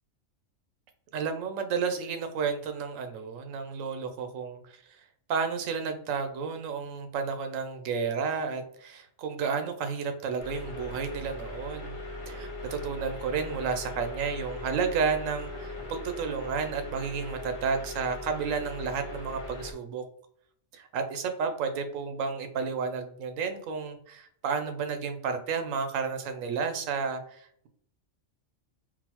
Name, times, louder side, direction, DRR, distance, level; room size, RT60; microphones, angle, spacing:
voice 1, 1.1-12.0 12.3-20.0 20.7-27.7, right 5 dB, 85° right, 7 dB, 1.0 m, -32 dB
sound 1, 10.4-19.7, left 2 dB, 45° left, 0.8 m, -40 dB
3.9 x 2.1 x 2.8 m, 0.63 s
omnidirectional pair, 1.3 m